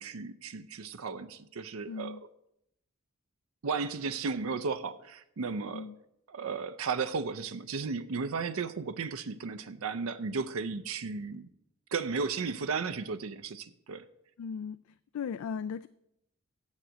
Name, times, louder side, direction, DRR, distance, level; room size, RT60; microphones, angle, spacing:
voice 1, 0.0-2.2 3.6-5.9 6.3-11.5 11.9-14.0, right 5 dB, 90° right, 0.5 m, -34 dB
voice 2, 1.9-2.2 5.7-5.9 14.4-14.8 15.1-15.9, left 6 dB, 90° left, 0.3 m, -37 dB
7.8 x 7.3 x 6.2 m
head